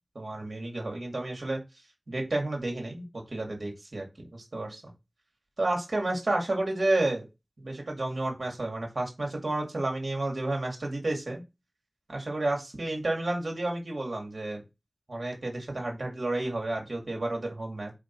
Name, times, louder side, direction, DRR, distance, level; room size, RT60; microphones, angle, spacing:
voice 1, 0.1-1.6 2.1-4.0 4.3-4.9 5.6-7.2 7.6-11.4 12.1-14.6 15.1-17.9, right 2 dB, 80° right, 1 dB, 2.3 m, -31 dB
5.1 x 5.0 x 4.7 m, 0.25 s
wide cardioid pair, 60°, 0 cm